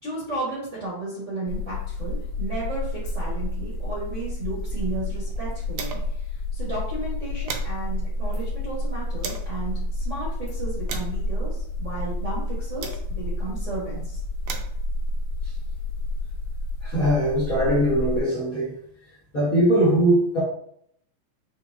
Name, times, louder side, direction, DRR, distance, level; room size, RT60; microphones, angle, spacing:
voice 1, 0.0-6.3 6.5-14.2, right 2 dB, 50° right, -6 dB, 0.9 m, -34 dB
sound 1, 1.5-18.2, left 1 dB, 70° left, 1.6 m, -30 dB
sound 2, 4.5-6.3 6.6-6.7 7.0-9.6 10.2-13.4 14.1-16.3, right 6 dB, 90° right, 1.4 m, -40 dB
voice 2, 16.8-18.7 19.3-20.4, right 1 dB, 50° left, -7 dB, 1.0 m, -21 dB
5.6 x 3.5 x 2.5 m, 0.68 s
omnidirectional pair, 3.4 m